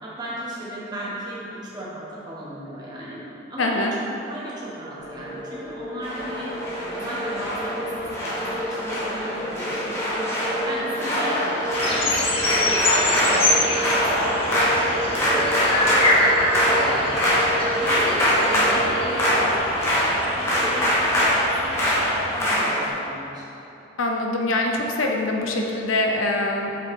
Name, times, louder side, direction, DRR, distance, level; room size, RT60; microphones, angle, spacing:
voice 1, 0.0-3.2 3.5-6.5 6.9-12.7 12.9-15.5 15.7-17.3 17.8-22.1 22.3-23.6, right 1 dB, 20° right, -7 dB, 1.5 m, -35 dB
voice 2, 3.6-3.9 24.0-26.7, left 2 dB, 85° left, 1 dB, 0.7 m, -24 dB
sound 1, 5.0-19.6, equal, 60° left, 1.4 m, -32 dB
sound 2, 6.0-22.9, equal, 15° left, 1.3 m, -23 dB
sound 3, 11.7-22.2, left 1 dB, 30° left, 0.9 m, -26 dB
7.7 x 5.5 x 3.8 m, 3.0 s
head